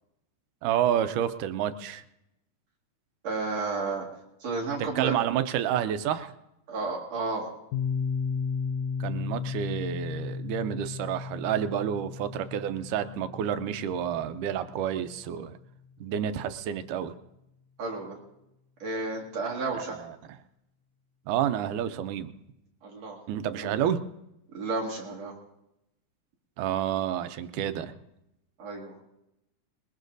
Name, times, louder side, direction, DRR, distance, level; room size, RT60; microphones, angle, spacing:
voice 1, 0.6-2.0 4.8-6.3 9.0-15.6 16.0-17.1 19.7-20.2 21.3-22.3 23.3-24.0 26.6-28.0, right 10 dB, 85° right, 10 dB, 2.2 m, -29 dB
voice 2, 3.2-4.0 4.4-5.1 6.7-7.5 17.8-18.2 18.8-19.9 22.8-23.2 23.5-23.7 24.5-25.3 28.6-28.9, right 3 dB, 60° right, -2 dB, 3.0 m, -32 dB
Piano, 7.7-15.2, left 6 dB, 75° left, 1.8 m, -34 dB
21.0 x 19.5 x 2.6 m, 0.88 s
omnidirectional pair, 3.5 m